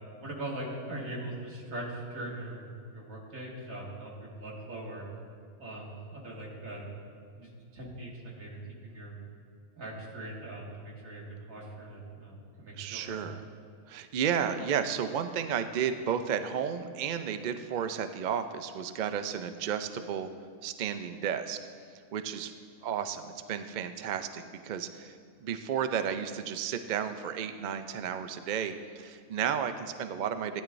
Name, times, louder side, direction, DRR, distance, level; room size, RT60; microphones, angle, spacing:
voice 1, 0.2-5.0 5.6-6.9 7.3-9.2 9.8-13.3, right 1 dB, 80° right, -3 dB, 2.3 m, -41 dB
voice 2, 12.8-13.4 13.9-20.3 20.6-21.6 22.1-22.5 22.8-30.6, right 8 dB, 65° right, 9 dB, 0.4 m, -33 dB
15.5 x 10.0 x 2.6 m, 2.2 s
omnidirectional pair, 1.4 m